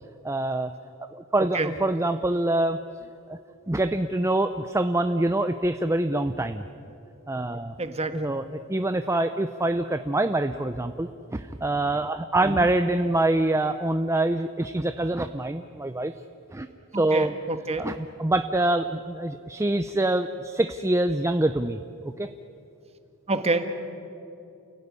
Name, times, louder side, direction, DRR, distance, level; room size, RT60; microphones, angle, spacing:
voice 1, 0.2-0.7 1.1-2.8 3.3-3.4 3.7-6.6 7.3-7.7 8.1-16.1 16.5-16.7 16.9-17.3 17.8-21.8 22.0-22.3, right 2 dB, 15° right, 9 dB, 0.6 m, -25 dB
voice 2, 7.8-8.2 12.4-12.7 16.9-17.9 23.3-23.7, right 2 dB, 30° right, 8 dB, 1.7 m, -27 dB
29.5 x 17.0 x 9.7 m, 2.7 s
head